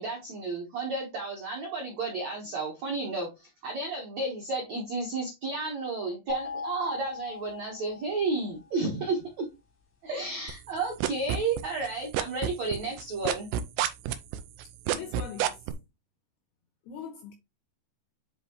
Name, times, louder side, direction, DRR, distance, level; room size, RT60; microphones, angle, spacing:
voice 1, 0.0-9.5 10.0-13.5, right 3 dB, 75° right, 1.6 m, -32 dB
sound 1, 6.3-8.5, left 5 dB, 60° left, 0.9 m, -39 dB
sound 2, 10.5-11.9 12.1-15.7, right 11 dB, 90° right, 2.4 m, -28 dB
voice 2, 14.9-15.7 16.9-17.3, left 7 dB, 80° left, 2.3 m, -41 dB
10.0 x 3.4 x 3.0 m
omnidirectional pair, 5.5 m